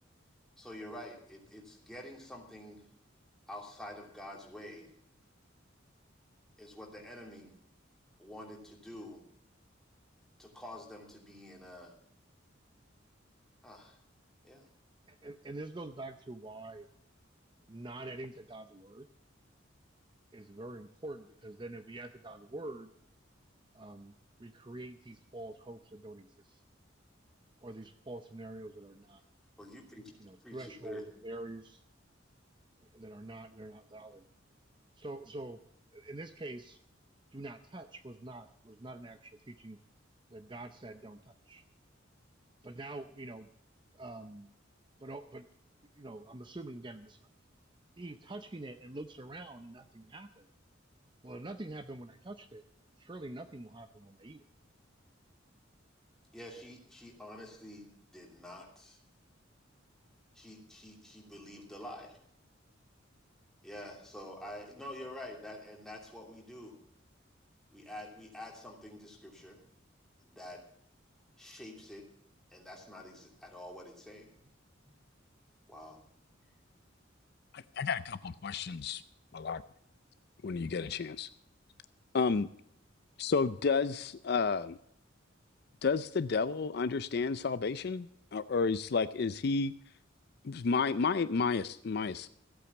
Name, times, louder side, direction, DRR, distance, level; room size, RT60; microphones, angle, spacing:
voice 1, 0.6-2.8 3.5-4.9 6.6-7.6 8.2-9.2 10.4-11.9 13.6-14.0 14.4-14.7 29.6-30.1 30.4-31.0 56.3-59.0 60.3-62.2 63.6-66.8 67.7-69.6 70.2-70.6 71.4-72.1 72.5-74.3 75.7-76.0, left 1 dB, 5° left, -1 dB, 2.8 m, -47 dB
voice 2, 15.1-16.9 17.7-19.1 20.3-22.9 23.7-24.1 24.4-26.6 27.6-29.2 30.2-31.8 32.9-34.3 35.0-35.6 35.9-36.8 37.3-39.8 40.3-41.6 42.6-43.5 43.9-44.5 45.0-45.5 46.0-47.2 48.0-50.5 51.2-52.6 53.0-54.4 80.8-80.9, right 2 dB, 25° right, 9 dB, 0.6 m, -45 dB
voice 3, 77.5-79.0 79.3-79.6 80.4-81.3 82.1-82.5 83.2-84.8 85.8-89.7 90.4-92.3, left 4 dB, 55° left, 14 dB, 0.4 m, -31 dB
15.0 x 8.5 x 7.1 m, 0.71 s
head